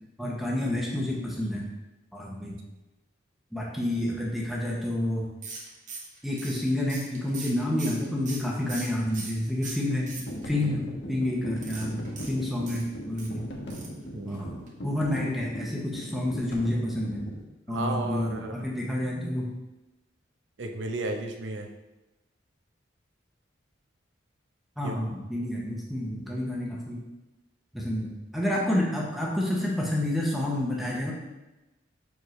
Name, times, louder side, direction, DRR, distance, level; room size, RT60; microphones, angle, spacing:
voice 1, 0.2-1.7 2.1-2.6 3.5-5.3 6.2-10.1 10.4-13.4 14.3-17.2 17.7-19.5 24.8-27.0 27.7-31.1, left 1 dB, ahead, -3 dB, 0.8 m, -29 dB
sound 1, 5.4-9.4 9.6-10.6 11.6-13.3 13.7-14.0 14.3-14.4 14.7-14.8, right 4 dB, 40° right, 1.1 m, -41 dB
sound 2, 10.1-17.4, equal, 65° left, 1.0 m, -39 dB
voice 2, 14.1-14.5 17.7-18.7 20.6-21.7 24.8-25.0, right 2 dB, 85° right, 4 dB, 0.7 m, -33 dB
6.5 x 4.7 x 3.2 m, 1.0 s
head